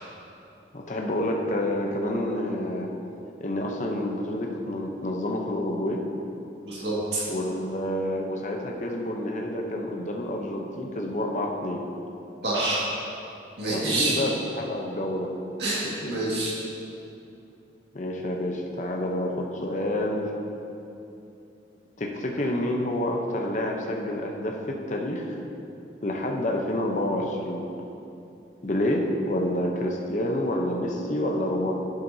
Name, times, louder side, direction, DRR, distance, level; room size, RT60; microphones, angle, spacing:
voice 1, 0.7-2.9 3.4-6.0 7.3-11.8 13.7-15.3 15.8-16.2 17.9-20.3 22.0-25.4 26.0-27.6 28.6-31.8, left 1 dB, 40° left, 1 dB, 0.7 m, -28 dB
voice 2, 6.6-7.2 12.4-12.9 13.6-14.2 15.6-16.6, right 2 dB, 65° right, -6 dB, 1.9 m, -27 dB
10.5 x 7.5 x 2.7 m, 2.7 s
head